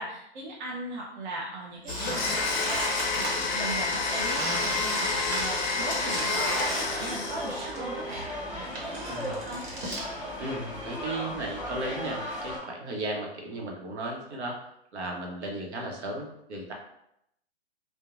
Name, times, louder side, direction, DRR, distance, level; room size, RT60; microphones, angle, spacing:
voice 1, 0.0-8.3 8.5-9.6, right 1 dB, 45° right, -4 dB, 0.5 m, -38 dB
Squeak, 1.8-3.3 4.1-7.8 8.1-10.0, right 2 dB, 65° right, 1.2 m, -35 dB
Domestic sounds home sounds, 1.9-7.7, left 4 dB, 45° left, 0.5 m, -29 dB
sound 1, 2.2-12.6, left 1 dB, ahead, 0.7 m, -38 dB
voice 2, 10.4-14.6 14.9-16.7, right 1 dB, 85° right, 0 dB, 0.8 m, -35 dB
2.8 x 2.1 x 2.4 m, 0.79 s
hypercardioid pair, 145°, 33 cm